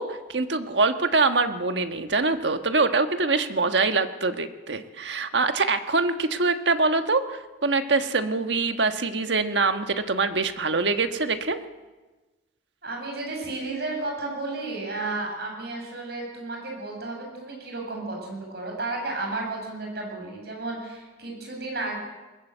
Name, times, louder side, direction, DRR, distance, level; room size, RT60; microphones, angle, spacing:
voice 1, 0.0-11.6, right 3 dB, 80° right, 8 dB, 1.4 m, -24 dB
voice 2, 12.8-22.0, right 2 dB, 60° right, 0 dB, 7.8 m, -33 dB
21.5 x 19.5 x 8.0 m, 1.2 s
head